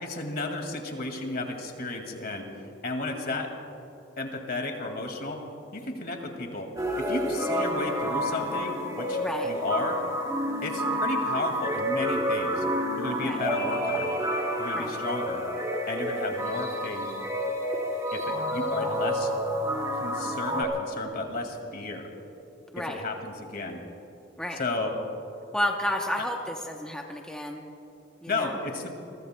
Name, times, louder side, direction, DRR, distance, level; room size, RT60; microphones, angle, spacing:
voice 1, 0.0-2.5 2.8-3.5 4.2-5.4 5.7-6.7 6.9-10.0 10.6-12.6 13.0-14.1 14.6-15.4 15.9-17.1 18.1-19.3 19.9-22.1 22.8-23.8 24.5-24.9 26.2-26.3 28.3-28.9, left 2 dB, 50° left, 3 dB, 2.1 m, -33 dB
sound 1, 6.8-20.6, equal, 20° right, 2.3 m, -29 dB
voice 2, 9.2-9.5 13.2-13.4 14.7-15.0 22.7-23.0 24.4-24.6 25.5-27.6 28.2-28.5, left 1 dB, 5° left, 1 dB, 0.8 m, -31 dB
28.5 x 22.0 x 2.2 m, 3.0 s
head